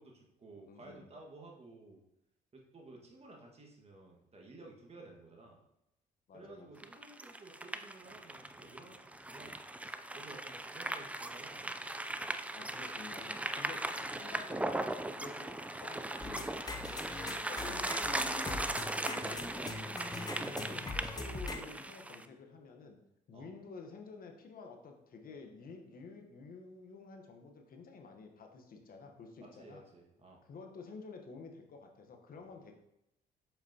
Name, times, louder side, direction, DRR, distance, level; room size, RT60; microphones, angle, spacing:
voice 1, 0.0-2.0 2.5-5.6 6.3-9.6 10.1-11.7 20.3-20.4 23.3-23.5 29.4-30.4, right 2 dB, 35° right, 0 dB, 1.7 m, -54 dB
voice 2, 0.7-1.1 1.9-2.0 6.3-6.7 8.8-9.0 10.2-10.3 12.5-14.6 15.1-16.6 17.2-20.0 20.3-23.0 23.3-29.8 30.4-32.7, left 4 dB, 55° left, 3 dB, 1.1 m, -51 dB
sound 1, 6.8-22.3, right 1 dB, 10° right, 0.4 m, -39 dB
sound 2, 16.2-21.6, left 3 dB, 20° left, 0.7 m, -42 dB
6.7 x 5.7 x 2.8 m, 0.84 s
supercardioid pair, 75°, 18 cm